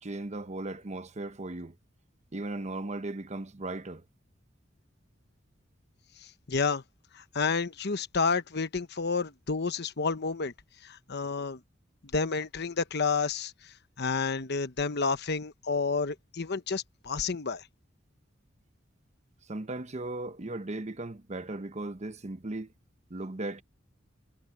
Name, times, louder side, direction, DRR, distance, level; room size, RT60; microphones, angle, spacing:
voice 1, 0.0-1.7 2.3-4.0 19.5-22.7 23.1-23.6, right 2 dB, 35° right, 0.9 m, -37 dB
voice 2, 6.5-6.8 7.3-10.5 11.1-11.6 12.1-13.5 14.0-17.6, left 4 dB, 60° left, 1.0 m, -30 dB
head